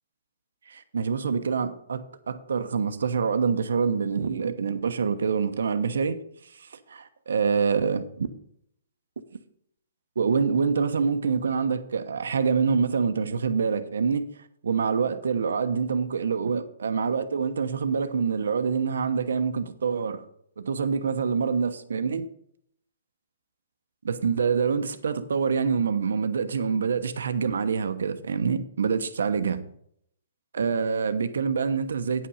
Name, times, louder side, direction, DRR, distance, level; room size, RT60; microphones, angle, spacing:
voice 1, 0.7-6.2 6.5-8.3 10.2-14.3 14.6-20.2 20.6-22.2 24.0-29.6 30.5-32.3, right 5 dB, 80° right, 1.0 m, -26 dB
9.5 x 5.8 x 5.6 m
hypercardioid pair, 155°, 0 cm